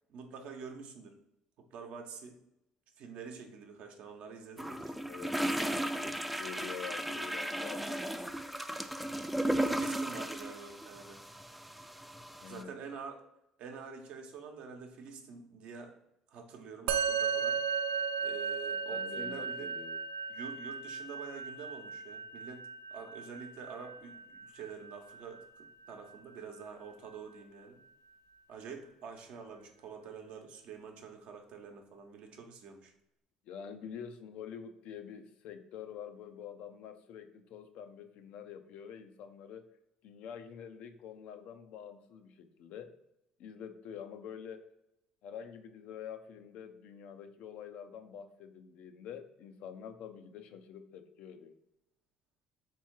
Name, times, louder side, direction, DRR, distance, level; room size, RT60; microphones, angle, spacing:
voice 1, 0.1-1.1 1.7-2.4 3.0-4.9 9.4-11.2 12.5-13.2 13.6-15.9 16.3-17.6 18.2-19.7 20.3-27.8 28.5-32.9, right 5 dB, 70° right, 3 dB, 0.8 m, -47 dB
sound 1, 4.6-12.6, right 1 dB, 5° right, 0.3 m, -35 dB
voice 2, 5.1-8.0 12.4-12.8 18.9-20.0 33.5-39.7 40.0-42.9 43.4-44.6 45.2-51.5, left 8 dB, 70° left, 8 dB, 0.5 m, -47 dB
Musical instrument, 16.9-26.4, right 6 dB, 90° right, 0.3 m, -36 dB
3.5 x 3.0 x 4.5 m, 0.82 s
supercardioid pair, 80°, 2 cm